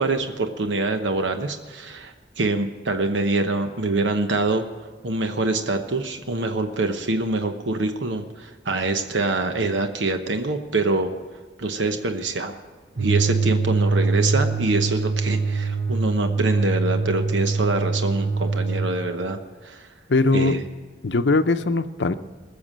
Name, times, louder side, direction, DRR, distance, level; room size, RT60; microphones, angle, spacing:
voice 1, 0.0-4.6 5.0-11.1 11.6-12.6 13.0-19.9 20.3-20.6, right 2 dB, 90° right, 7 dB, 1.0 m, -25 dB
sound 1, 13.0-18.9, right 4 dB, 70° right, 1.4 m, -23 dB
voice 2, 20.1-20.6 21.0-22.1, left 3 dB, 70° left, 11 dB, 0.7 m, -20 dB
20.5 x 7.1 x 7.4 m, 1.4 s
head